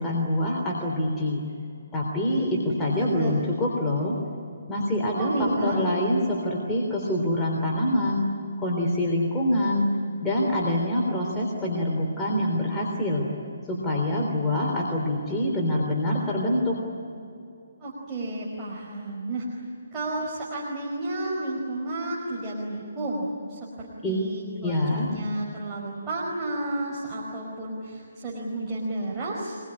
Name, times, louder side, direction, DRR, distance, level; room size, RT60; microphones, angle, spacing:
voice 1, 0.0-1.4 1.9-4.2 4.7-5.3 5.6-8.3 8.6-9.9 10.2-13.2 13.7-16.8 24.0-24.3 24.6-25.1, left 1 dB, 10° left, -3 dB, 3.5 m, -25 dB
voice 2, 2.3-3.4 5.1-5.8 17.8-19.6 19.9-29.6, right 2 dB, 15° right, -5 dB, 5.0 m, -31 dB
25.5 x 22.0 x 9.9 m, 2.5 s
hypercardioid pair, 160°, 0 cm